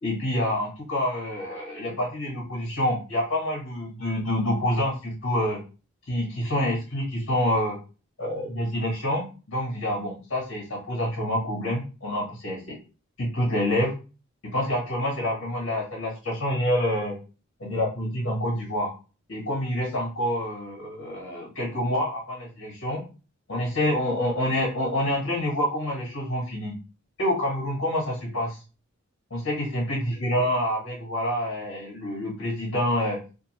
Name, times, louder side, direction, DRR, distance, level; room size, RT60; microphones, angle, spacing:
voice 1, 0.0-5.6 6.1-7.8 8.2-12.8 13.2-13.9 14.5-17.2 17.6-18.9 19.3-23.0 23.5-26.7 27.2-28.6 29.3-33.2, left 1 dB, 80° left, -1 dB, 1.2 m, -27 dB
2.6 x 2.3 x 3.0 m, 0.33 s
head